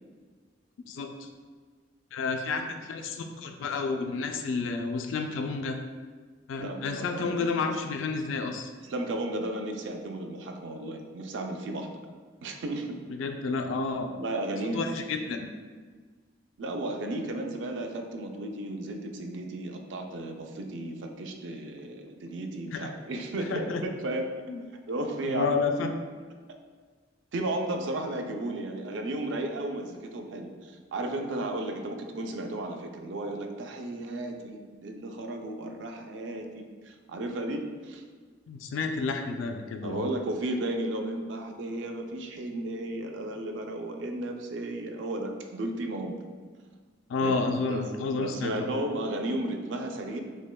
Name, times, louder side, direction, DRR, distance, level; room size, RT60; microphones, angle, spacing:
voice 1, 0.9-1.3 2.1-5.8 6.5-8.7 13.1-14.1 14.7-15.5 22.7-22.9 23.5-23.8 24.5-24.6 25.2-25.9 38.5-40.1 47.1-48.7, left 4 dB, 80° left, 5 dB, 0.4 m, -30 dB
voice 2, 6.6-7.8 8.8-12.0 12.4-13.0 14.1-14.9 16.6-24.3 24.9-25.8 27.3-38.0 39.8-46.2 47.2-47.3 47.7-50.2, right 1 dB, 65° right, 4 dB, 0.4 m, -34 dB
6.1 x 2.2 x 2.2 m, 1.5 s
head